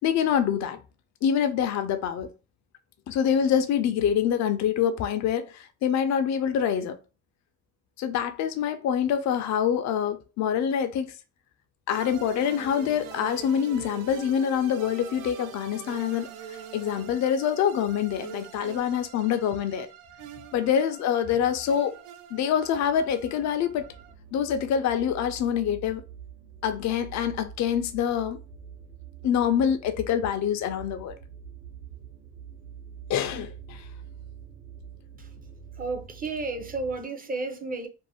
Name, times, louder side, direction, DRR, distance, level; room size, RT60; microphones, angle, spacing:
voice 1, 0.0-0.8 1.2-2.3 3.1-7.0 8.0-11.1 11.9-19.9 20.5-21.9 22.3-23.9 24.3-26.0 26.6-28.4 29.2-31.1 33.1-33.9, left 8 dB, 65° left, 0.5 m, -25 dB
sound 1, 11.9-24.1, right 9 dB, 90° right, 0.5 m, -44 dB
sound 2, 22.6-37.0, right 8 dB, 70° right, 0.9 m, -46 dB
voice 2, 35.7-37.9, right 3 dB, 30° right, 0.6 m, -32 dB
2.5 x 2.1 x 3.4 m
cardioid pair, 90°, 30 cm